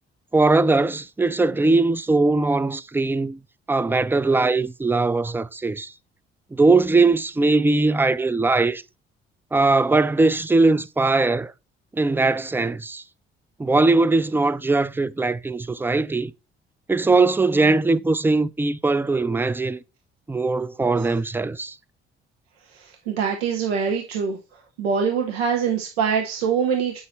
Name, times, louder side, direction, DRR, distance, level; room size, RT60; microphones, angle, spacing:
voice 1, 0.3-3.4 3.7-5.9 6.5-8.8 9.5-11.5 11.9-13.0 13.6-16.3 16.9-19.8 20.3-21.8, right 3 dB, 5° right, 0.3 m, -20 dB
voice 2, 22.7-24.4 24.8-27.0, right 6 dB, 90° right, 0.7 m, -24 dB
7.1 x 5.5 x 3.1 m
hypercardioid pair, 50°, 30 cm